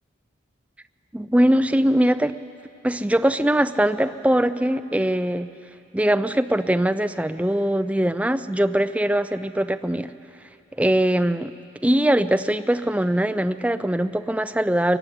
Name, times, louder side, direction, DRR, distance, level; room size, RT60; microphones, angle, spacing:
voice 1, 1.1-2.3 2.8-5.5 5.9-10.1 10.8-11.5 11.8-15.0, right 1 dB, 5° right, 10 dB, 0.4 m, -21 dB
23.0 x 15.0 x 10.0 m, 2.7 s
head